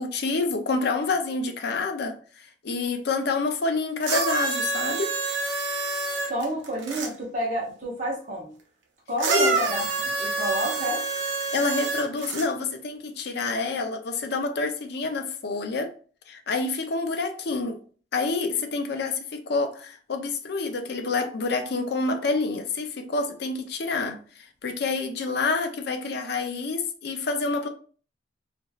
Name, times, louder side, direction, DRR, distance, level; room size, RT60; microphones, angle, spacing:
voice 1, 0.0-5.1 9.3-9.6 11.5-15.9 16.3-17.8 18.1-27.7, left 3 dB, 60° left, 0.5 m, -28 dB
sound 1, 4.0-7.1 9.2-12.5 13.4-13.5, right 3 dB, 85° right, 0.7 m, -27 dB
voice 2, 6.2-8.6 9.1-11.0, equal, 40° right, 0.9 m, -30 dB
3.0 x 2.4 x 2.3 m
head